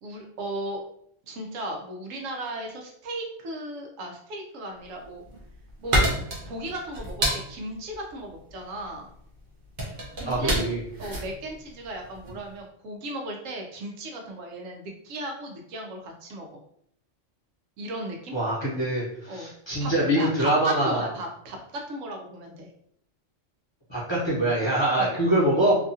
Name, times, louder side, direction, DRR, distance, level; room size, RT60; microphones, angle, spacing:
voice 1, 0.0-0.8 1.3-5.2 5.8-6.0 6.4-9.1 10.2-10.6 11.0-16.6 17.8-18.3 19.3-19.5 19.8-22.7 25.0-25.2, right 1 dB, 80° right, 2 dB, 1.0 m, -36 dB
sound 1, 5.0-12.5, right 1 dB, 50° right, 0.8 m, -29 dB
voice 2, 10.2-10.8 18.3-21.1 23.9-25.8, right 1 dB, 25° left, -8 dB, 0.7 m, -24 dB
2.8 x 2.4 x 2.6 m, 0.68 s
omnidirectional pair, 1.3 m